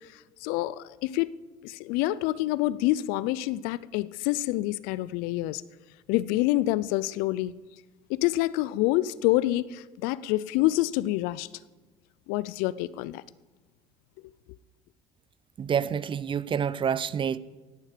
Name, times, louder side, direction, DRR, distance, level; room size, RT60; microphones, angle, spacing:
voice 1, 0.4-1.3 1.6-5.6 6.1-7.5 8.1-11.5 12.3-13.2, left 16 dB, 75° left, 0.5 m, -27 dB
voice 2, 15.6-17.4, right 7 dB, 35° right, 0.5 m, -28 dB
16.5 x 10.5 x 5.1 m
supercardioid pair, 85°, 15 cm